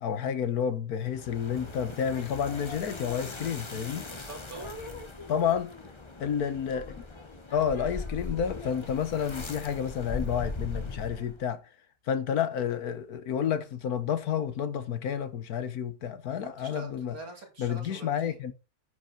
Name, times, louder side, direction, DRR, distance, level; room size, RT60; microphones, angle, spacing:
voice 1, 0.0-4.1 5.3-5.7 6.2-7.0 7.5-11.6 12.1-17.1 17.6-18.5, left 8 dB, 70° left, 1.5 m, -30 dB
sound 1, 1.1-11.5, left 3 dB, 20° left, 1.0 m, -40 dB
voice 2, 4.1-4.8 16.4-18.5, right 3 dB, 65° right, 3.9 m, -45 dB
10.0 x 5.4 x 5.8 m
omnidirectional pair, 1.7 m